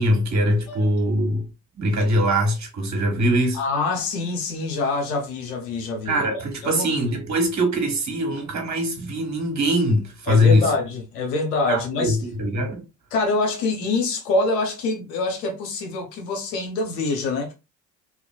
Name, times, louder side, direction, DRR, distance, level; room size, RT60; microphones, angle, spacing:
voice 1, 0.0-1.5 1.8-3.6 6.1-10.7 11.7-12.8, equal, 35° right, 1.4 m, -22 dB
voice 2, 3.5-6.9 10.3-12.2 13.1-17.5, left 3 dB, 85° left, 1.0 m, -25 dB
3.0 x 2.4 x 2.4 m
hypercardioid pair, 65°, 48 cm